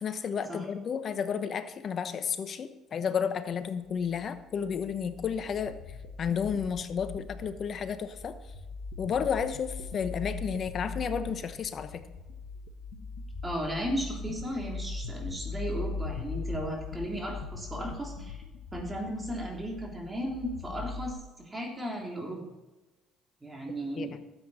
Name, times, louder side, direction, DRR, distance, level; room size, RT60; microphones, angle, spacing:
voice 1, 0.0-5.8 6.2-8.3 9.0-12.0 24.0-24.2, left 7 dB, 50° left, 10 dB, 1.0 m, -32 dB
sound 1, 4.0-21.1, left 3 dB, 70° left, 1.3 m, -40 dB
voice 2, 13.4-18.4 18.7-22.4 23.4-24.1, equal, 20° right, -1 dB, 3.4 m, -35 dB
13.0 x 8.2 x 4.2 m, 1.1 s
supercardioid pair, 70°, 0 cm